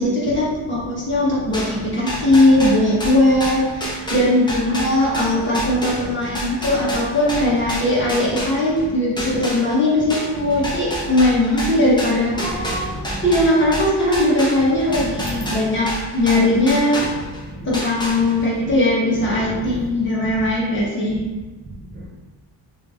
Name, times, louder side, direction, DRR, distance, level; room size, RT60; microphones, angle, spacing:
voice 1, 0.0-12.6 13.2-17.1 17.6-21.2, left 1 dB, 25° left, -6 dB, 1.1 m, -19 dB
voice 2, 1.4-2.0 6.2-6.9 8.9-9.0 10.5-10.6 12.4-13.2 14.9-15.5 17.1-17.8 18.6-18.7 19.4-19.9 20.2-20.5 21.1-21.3 21.6-22.1, right 1 dB, 30° right, -4 dB, 0.4 m, -32 dB
sound 1, 1.5-8.9 9.2-17.4 17.7-18.6, equal, 10° left, 0.7 m, -29 dB
3.0 x 2.7 x 3.4 m, 1.2 s
wide cardioid pair, 140°, 44 cm